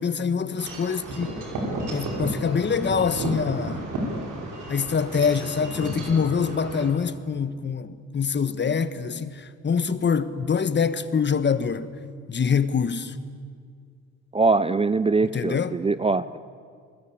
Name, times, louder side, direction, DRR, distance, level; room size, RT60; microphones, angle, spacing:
voice 1, 0.0-1.3 1.9-3.9 4.7-11.9 12.3-13.1 15.2-15.8, left 6 dB, 35° left, 1.4 m, -25 dB
Wind chime / Wind, 0.6-6.9, right 1 dB, 85° right, 5.6 m, -32 dB
voice 2, 14.3-16.4, right 3 dB, 20° right, 0.6 m, -22 dB
27.5 x 20.0 x 8.8 m
cardioid pair, 90°, 30 cm